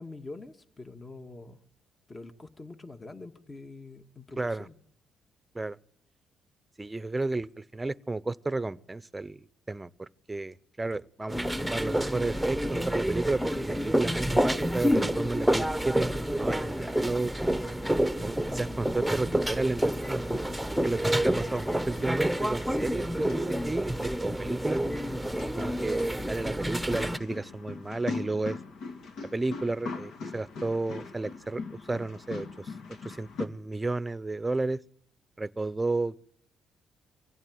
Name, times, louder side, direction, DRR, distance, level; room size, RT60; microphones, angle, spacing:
voice 1, 0.0-1.6 2.1-4.7, left 3 dB, 25° left, 1.9 m, -45 dB
voice 2, 4.4-4.7 5.5-5.8 6.8-17.3 18.2-20.2 20.8-24.8 25.6-28.6 29.2-32.7 33.0-34.8 35.4-36.2, right 2 dB, 15° right, 0.9 m, -32 dB
sound 1, 11.3-27.2, right 1 dB, ahead, 1.2 m, -28 dB
sound 2, 20.0-33.5, left 4 dB, 70° left, 2.3 m, -42 dB
24.5 x 16.0 x 9.4 m
cardioid pair, 90°, 0 cm